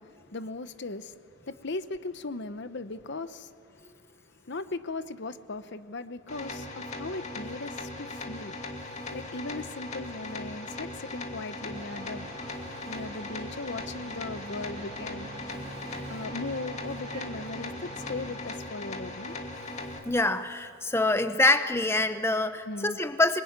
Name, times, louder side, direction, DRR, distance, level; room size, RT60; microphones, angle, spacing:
voice 1, 0.0-8.6 9.1-12.3 12.9-15.3 16.1-19.4 22.7-23.0, left 3 dB, 55° left, 12 dB, 0.9 m, -38 dB
sound 1, 6.3-20.0, left 2 dB, 35° left, 2.3 m, -39 dB
sound 2, 11.7-18.4, right 2 dB, 30° right, 2.9 m, -45 dB
voice 2, 20.0-23.4, left 2 dB, 10° left, 9 dB, 0.8 m, -25 dB
26.0 x 22.0 x 9.5 m, 2.2 s
head